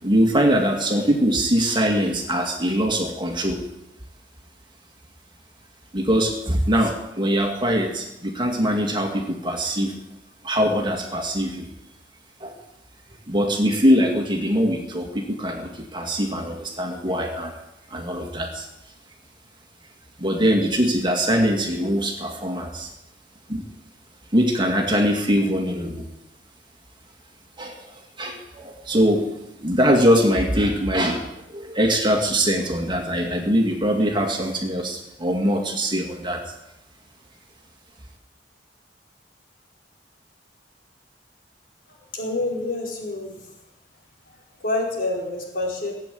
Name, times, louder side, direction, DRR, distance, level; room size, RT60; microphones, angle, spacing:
voice 1, 0.0-3.6 5.9-10.0 10.4-11.7 12.4-12.6 13.3-17.5 17.9-18.7 20.2-22.9 23.5-23.6 24.3-26.1 27.6-29.3 29.6-36.4, equal, 25° right, 2 dB, 2.2 m, -22 dB
voice 2, 41.9-43.4 44.6-46.0, left 2 dB, 50° left, -2 dB, 4.8 m, -27 dB
18.0 x 8.4 x 9.3 m, 0.88 s
head